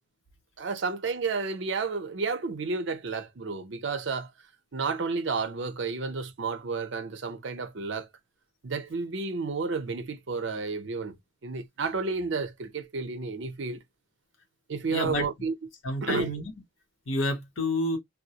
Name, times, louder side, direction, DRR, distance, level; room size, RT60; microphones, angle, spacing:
voice 1, 0.6-4.3 4.7-8.1 8.6-11.2 11.4-13.8 14.7-15.5 16.0-16.3, right 4 dB, 70° right, 0.6 m, -31 dB
voice 2, 14.9-15.3 15.8-16.5 17.1-18.0, left 1 dB, 90° left, 0.9 m, -29 dB
2.2 x 2.1 x 2.7 m
head